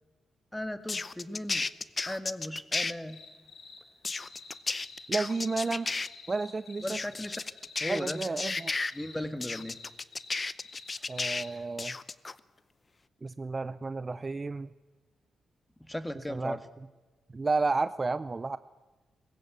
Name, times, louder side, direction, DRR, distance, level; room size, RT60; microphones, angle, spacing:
voice 1, 0.5-1.7 2.1-3.2 6.8-7.4 7.8-8.2 8.9-9.8 15.8-16.6, left 1 dB, 10° left, 11 dB, 1.6 m, -37 dB
sound 1, 0.9-2.9 4.0-6.1 6.9-8.9 9.4-11.5 11.8-12.3, left 3 dB, 35° left, 0.7 m, -33 dB
sound 2, 3.1-3.8 4.0-11.5, left 4 dB, 75° left, 4.2 m, -49 dB
voice 2, 5.1-5.9 6.3-7.0 7.9-8.7 11.1-11.9 13.2-14.7 16.3-16.6 17.3-18.6, right 3 dB, 30° right, 15 dB, 0.5 m, -31 dB
19.5 x 16.5 x 8.1 m, 1.2 s
cardioid pair, 65°, 0 cm